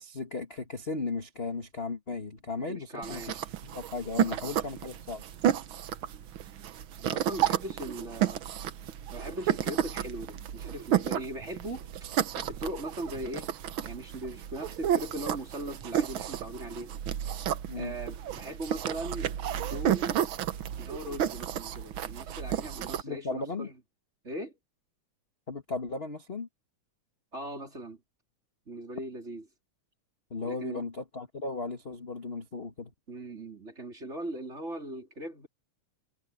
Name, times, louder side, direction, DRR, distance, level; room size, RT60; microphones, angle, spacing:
voice 1, 0.0-5.2 17.7-18.0 23.0-23.7 25.5-26.5 30.3-32.9, left 3 dB, 25° left, 1.7 m, -36 dB
voice 2, 2.7-3.4 4.2-4.4 7.0-8.4 9.1-12.1 12.4-13.5 13.8-16.9 17.7-20.2 20.8-23.7 24.2-24.5 27.3-28.0 28.7-29.4 30.4-30.8 33.1-35.5, right 1 dB, 20° right, 4.0 m, -39 dB
sound 1, 3.0-23.0, right 10 dB, 65° right, 1.3 m, -32 dB
omnidirectional pair, 3.4 m